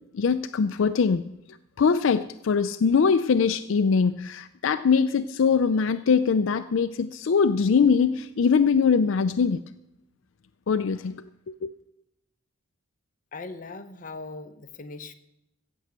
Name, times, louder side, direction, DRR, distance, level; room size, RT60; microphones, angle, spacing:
voice 1, 0.1-1.2 1.8-9.6 10.7-11.2 11.6-11.7, left 5 dB, 70° left, 11 dB, 0.4 m, -22 dB
voice 2, 13.3-15.1, left 3 dB, 40° left, 7 dB, 0.8 m, -39 dB
15.5 x 6.3 x 8.1 m, 0.84 s
head